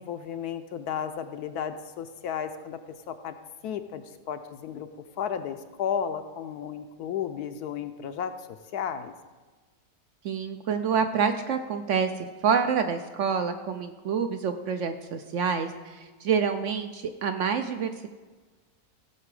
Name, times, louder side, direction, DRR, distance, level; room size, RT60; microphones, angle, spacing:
voice 1, 0.0-2.8 3.1-3.3 3.6-4.9 5.2-9.1, left 8 dB, 70° left, 9 dB, 1.0 m, -33 dB
voice 2, 10.2-18.1, right 6 dB, 75° right, 8 dB, 0.7 m, -27 dB
16.0 x 5.9 x 4.8 m, 1.3 s
omnidirectional pair, 1.9 m